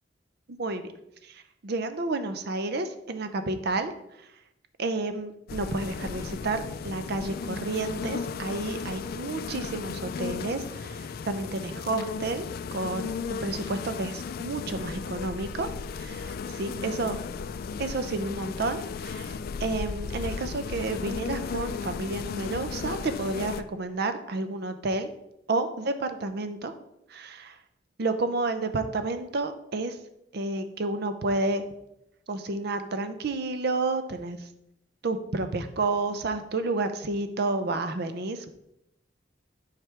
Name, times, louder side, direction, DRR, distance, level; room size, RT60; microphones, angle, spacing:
voice 1, 0.5-0.9 1.2-3.9 4.8-12.5 12.7-15.7 16.0-17.2 17.8-25.1 25.5-26.7 27.1-27.5 28.0-30.0 30.3-31.6 32.3-34.4 35.0-38.4, right 3 dB, 60° right, 9 dB, 0.6 m, -30 dB
sound 1, 5.5-23.6, left 5 dB, 55° left, 0.3 m, -35 dB
7.4 x 5.0 x 3.3 m, 0.83 s
head